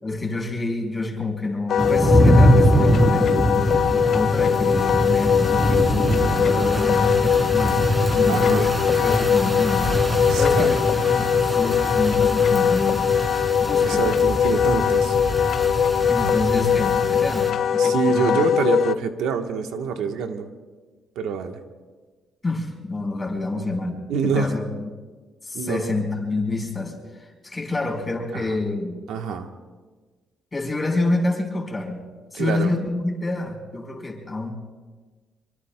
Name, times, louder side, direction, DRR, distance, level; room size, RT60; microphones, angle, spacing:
voice 1, 0.0-7.8 8.1-9.9 10.4-13.1 13.6-14.1 16.1-18.4 22.4-24.9 25.4-29.0 30.5-32.0 32.3-34.5, left 2 dB, 15° left, 0 dB, 4.5 m, -28 dB
Wind instrument woodwind instrument, 1.7-19.0, left 8 dB, 55° left, 0.4 m, -21 dB
sound 1, 1.8-17.5, equal, 20° right, 2.8 m, -23 dB
voice 2, 6.6-6.9 8.3-8.7 10.3-10.7 13.8-15.2 17.8-20.5 21.1-21.6 24.1-24.5 25.5-25.9 28.3-28.6 29.1-29.5 32.3-32.7, right 6 dB, 90° right, 5 dB, 1.1 m, -26 dB
24.5 x 24.0 x 2.2 m, 1.4 s
cardioid pair, 115°, 0 cm